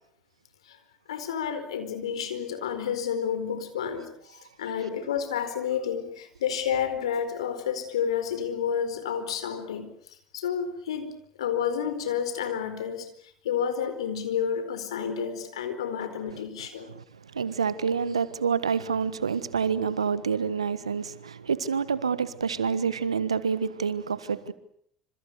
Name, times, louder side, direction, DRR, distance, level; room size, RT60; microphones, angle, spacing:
voice 1, 1.1-9.9 10.3-11.1 11.4-16.9, left 8 dB, 80° left, 9 dB, 4.5 m, -30 dB
voice 2, 17.3-24.5, right 6 dB, 90° right, 16 dB, 1.4 m, -27 dB
27.0 x 26.5 x 6.8 m, 0.66 s
hypercardioid pair, 65°, 3 cm